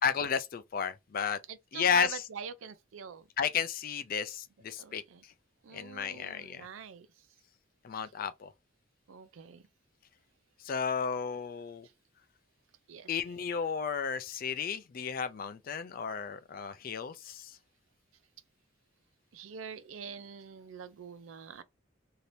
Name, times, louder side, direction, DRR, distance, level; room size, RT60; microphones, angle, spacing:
voice 1, 0.0-1.4 1.7-2.2 3.4-5.3 5.7-6.7 7.8-8.5 10.6-11.9 13.1-17.6, left 7 dB, 45° left, 0.4 m, -33 dB
voice 2, 1.7-3.2 4.8-5.2 5.6-7.1 9.1-9.6 12.9-13.1 19.3-21.6, right 6 dB, 85° right, 0.4 m, -44 dB
2.8 x 2.6 x 3.2 m
head